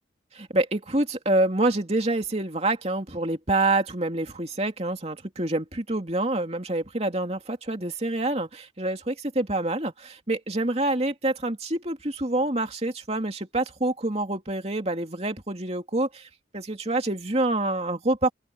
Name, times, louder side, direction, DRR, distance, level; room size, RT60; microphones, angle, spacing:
voice 1, 0.3-16.3 16.5-18.3, right 2 dB, 35° right, 2.7 m, -27 dB
open air
head